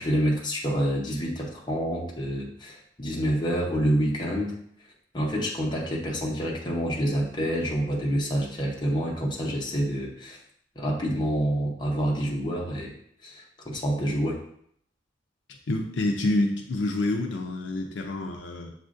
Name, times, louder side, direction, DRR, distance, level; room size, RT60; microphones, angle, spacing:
voice 1, 0.0-4.6 5.1-10.4 10.7-12.9 13.2-14.4, equal, 25° left, -2 dB, 0.8 m, -27 dB
voice 2, 15.7-18.7, left 2 dB, 70° left, 2 dB, 0.5 m, -27 dB
7.2 x 2.5 x 2.5 m, 0.68 s
head